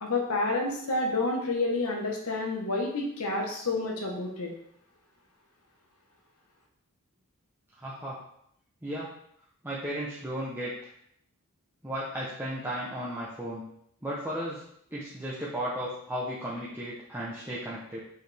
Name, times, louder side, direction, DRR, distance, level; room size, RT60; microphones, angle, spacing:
voice 1, 0.0-4.5, left 2 dB, 75° left, 0 dB, 1.4 m, -29 dB
voice 2, 7.8-8.2 8.8-9.1 9.6-10.9 11.8-13.6 14.0-14.6 14.9-18.0, equal, 10° right, -7 dB, 0.9 m, -35 dB
6.4 x 5.0 x 3.5 m, 0.71 s
head